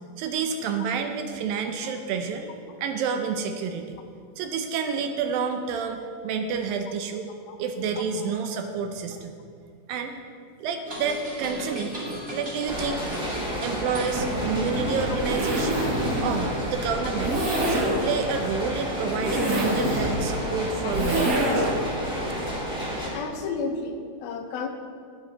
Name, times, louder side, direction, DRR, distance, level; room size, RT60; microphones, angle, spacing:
voice 1, 0.2-4.0 4.4-7.3 7.6-9.3 9.9-10.1 10.6-11.9 12.3-13.0 13.6-15.9 16.2-17.4 17.6-21.7, right 6 dB, 75° right, 6 dB, 2.3 m, -29 dB
sound 1, 10.9-17.0, right 1 dB, 25° right, 1.8 m, -38 dB
sound 2, 12.7-23.1, equal, ahead, 1.6 m, -31 dB
Zipper (clothing), 14.0-21.9, right 1 dB, 60° right, 4.4 m, -27 dB
voice 2, 23.1-24.7, left 4 dB, 80° left, 5 dB, 2.7 m, -32 dB
17.0 x 8.4 x 4.1 m, 2.2 s
omnidirectional pair, 4.4 m